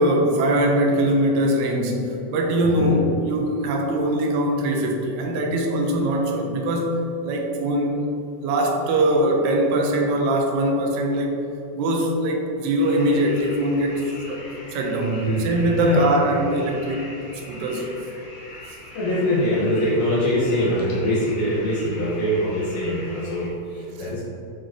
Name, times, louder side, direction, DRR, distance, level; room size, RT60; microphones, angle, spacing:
voice 1, 0.0-8.0 8.4-11.3 11.7-14.4 14.7-17.1 17.3-17.9 24.0-24.1, right 1 dB, 80° right, 1 dB, 2.1 m, -22 dB
sound 1, 12.8-23.5, left 1 dB, 60° left, 2.1 m, -42 dB
voice 2, 18.9-24.2, left 1 dB, 80° left, -10 dB, 2.8 m, -23 dB
8.9 x 4.4 x 3.0 m, 2.8 s
omnidirectional pair, 3.3 m